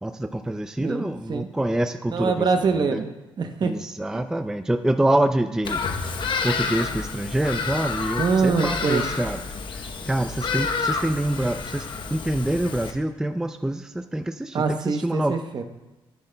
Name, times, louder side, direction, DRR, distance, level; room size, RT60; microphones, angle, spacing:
voice 1, 0.0-2.5 2.9-3.0 3.6-5.8 6.4-9.4 9.7-11.8 12.1-15.4, right 1 dB, 5° right, 8 dB, 0.3 m, -26 dB
voice 2, 0.8-1.5 2.1-3.7 8.2-9.1 14.5-15.6, right 5 dB, 50° right, 7 dB, 0.8 m, -24 dB
Bird vocalization bird call bird song, 5.6-12.9, left 5 dB, 55° left, 0.9 m, -29 dB
10.5 x 9.8 x 2.2 m, 1.1 s
cardioid pair, 100°, 10 cm